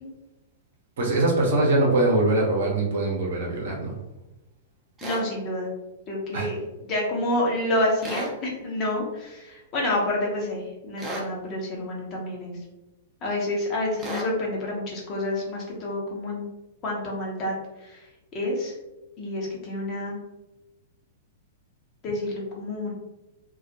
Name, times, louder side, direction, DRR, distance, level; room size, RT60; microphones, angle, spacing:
voice 1, 1.0-3.9 6.3-6.5, right 2 dB, 65° right, -2 dB, 0.7 m, -22 dB
voice 2, 5.0-5.7 6.1-12.6 13.2-16.4 16.8-17.5 17.8-18.0 18.3-18.7 19.2-20.2 22.0-22.9, left 1 dB, 35° left, -2 dB, 0.8 m, -28 dB
sound 1, 5.0-5.3 8.0-8.4 11.0-11.3 14.0-14.3, right 1 dB, 15° right, 0.5 m, -33 dB
2.3 x 2.1 x 2.7 m, 0.99 s
figure-of-eight pair, 100°, 0 cm